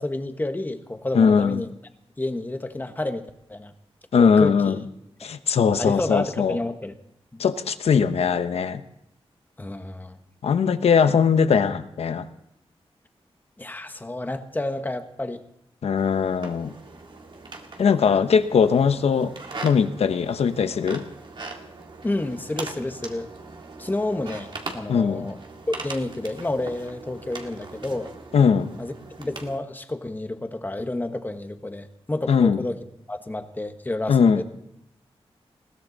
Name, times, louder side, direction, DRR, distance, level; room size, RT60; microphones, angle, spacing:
voice 1, 0.0-1.7 2.2-3.7 4.2-4.9 5.8-6.9 7.3-7.4 9.6-10.2 13.6-15.4 22.0-23.3 23.8-25.4 25.7-28.1 28.8-28.9 29.2-32.8 33.1-34.4, left 2 dB, 20° left, 8 dB, 1.3 m, -30 dB
voice 2, 1.1-1.6 4.1-4.8 5.2-6.6 7.4-8.8 10.4-12.3 15.8-16.7 17.8-19.3 19.6-21.0 24.9-25.3 28.3-28.7 32.3-32.6 34.1-34.4, left 6 dB, 85° left, 11 dB, 1.0 m, -20 dB
sound 1, 15.9-29.6, right 3 dB, 50° right, 2.0 m, -40 dB
21.0 x 16.5 x 4.1 m, 0.78 s
wide cardioid pair, 115°, 10 cm